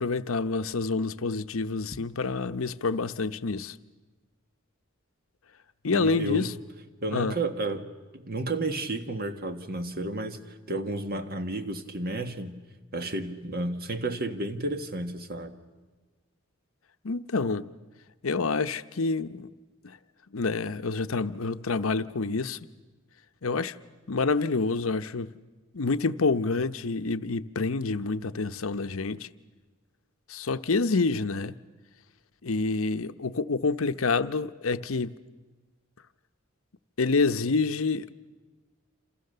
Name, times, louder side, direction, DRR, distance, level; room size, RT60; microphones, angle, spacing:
voice 1, 0.0-3.8 5.8-6.5 7.1-7.3 17.0-17.7 18.2-19.5 19.8-20.0 20.3-22.6 23.4-23.8 24.1-25.3 25.7-29.3 30.3-31.6 32.4-35.1 37.0-38.1, left 4 dB, 90° left, 0.8 m, -27 dB
voice 2, 5.9-6.5 7.0-10.4 10.7-12.6 12.9-15.6, right 2 dB, 50° right, 1.7 m, -32 dB
28.0 x 27.5 x 6.8 m
head